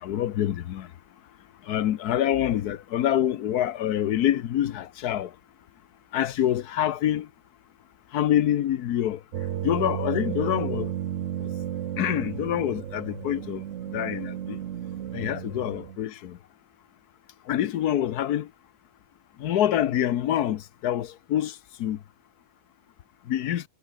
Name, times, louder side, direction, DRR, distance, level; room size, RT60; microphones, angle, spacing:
voice 1, 0.0-0.9 1.7-5.3 6.1-7.3 8.1-9.2 9.6-10.9 12.0-13.6 13.9-14.6 15.1-16.4 17.5-18.5 19.4-22.0 23.3-23.6, left 11 dB, 75° left, 1.3 m, -26 dB
sound 1, 9.3-16.0, right 10 dB, 55° right, 1.0 m, -33 dB
omnidirectional pair, 1.7 m